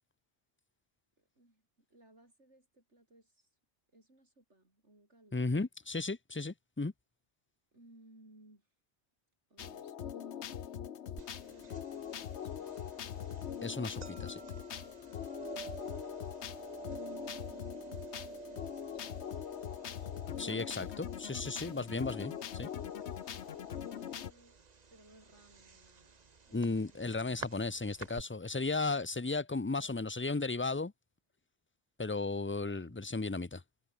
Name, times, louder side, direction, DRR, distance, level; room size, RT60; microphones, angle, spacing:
voice 1, 1.2-3.5 3.9-5.5 7.7-8.7 9.5-10.5 11.5-13.2 14.1-15.2 16.8-21.2 23.5-24.6 24.9-26.2 26.4-27.4 29.7-30.2 32.4-33.0, right 1 dB, 85° right, 7.8 m, -63 dB
voice 2, 5.3-6.9 13.6-14.4 20.4-22.7 26.5-30.9 32.0-33.6, left 3 dB, 15° left, 0.5 m, -35 dB
sound 1, 9.6-24.3, left 9 dB, 75° left, 1.2 m, -42 dB
sound 2, 11.2-28.2, right 5 dB, 40° right, 1.2 m, -51 dB
omnidirectional pair, 1.2 m